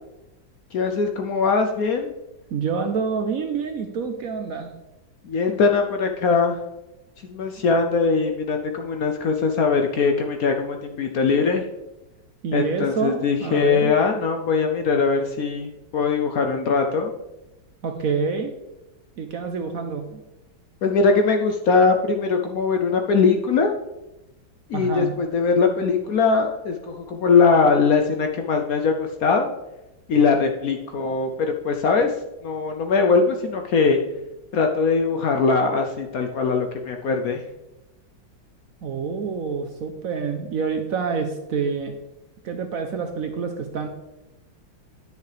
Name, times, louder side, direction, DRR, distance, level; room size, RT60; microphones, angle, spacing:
voice 1, 0.7-2.1 5.2-6.6 7.2-11.6 12.5-17.1 20.8-23.7 24.7-29.5 30.1-32.1 32.4-34.0 34.5-37.4, left 4 dB, 65° left, 4 dB, 0.9 m, -21 dB
voice 2, 2.5-4.7 12.4-13.9 17.8-18.5 19.2-20.2 24.7-25.1 31.0-31.2 38.8-41.9 42.4-43.9, right 5 dB, 60° right, 5 dB, 0.9 m, -27 dB
10.5 x 6.5 x 3.3 m, 0.97 s
omnidirectional pair, 2.0 m